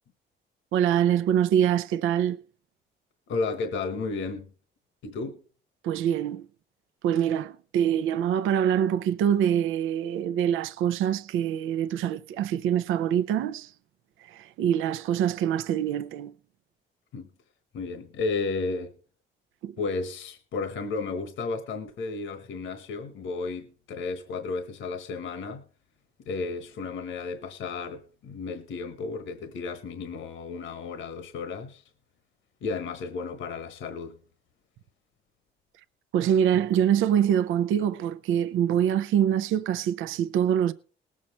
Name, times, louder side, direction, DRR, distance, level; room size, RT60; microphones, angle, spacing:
voice 1, 0.7-2.4 5.8-6.5 7.0-13.7 14.3-16.3 19.6-19.7 36.1-40.7, right 9 dB, 85° right, 0.6 m, -24 dB
voice 2, 3.3-4.5 5.0-5.4 17.1-17.3 17.7-18.9 19.8-25.6 26.2-31.8 32.6-34.2, left 4 dB, 75° left, 1.2 m, -33 dB
19.0 x 7.4 x 4.3 m
cardioid pair, 90°, 20 cm